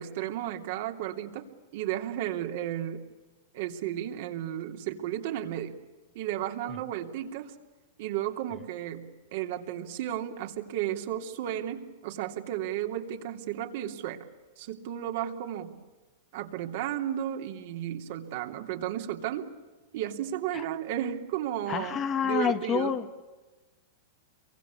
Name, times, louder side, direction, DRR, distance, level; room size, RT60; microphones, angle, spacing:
voice 1, 0.0-1.4 1.7-3.0 3.5-5.7 6.1-7.5 8.0-14.2 14.6-15.7 16.3-19.5 19.9-22.9, right 11 dB, 60° right, 4 dB, 3.0 m, -33 dB
voice 2, 21.7-23.3, left 8 dB, 25° left, 10 dB, 1.4 m, -29 dB
27.5 x 24.0 x 8.3 m, 1.2 s
supercardioid pair, 145°, 0 cm